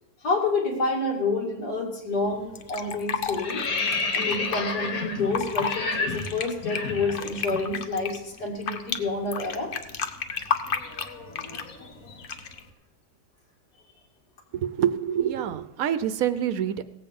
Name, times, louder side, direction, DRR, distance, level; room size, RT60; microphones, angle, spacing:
voice 1, 0.2-3.6 4.1-9.7, left 3 dB, 80° left, 0 dB, 2.7 m, -28 dB
sound 1, 2.1-2.4 2.7-7.7 7.9-8.1 8.4-12.5, left 3 dB, 65° left, 1.7 m, -32 dB
Fill (with liquid), 2.6-4.6 5.2-5.8 6.1-9.0 9.3-11.7 12.2-12.6, left 6 dB, 50° left, 0.7 m, -31 dB
voice 2, 14.5-16.8, right 9 dB, 70° right, 13 dB, 1.0 m, -26 dB
17.5 x 7.8 x 5.2 m, 0.92 s
omnidirectional pair, 1.7 m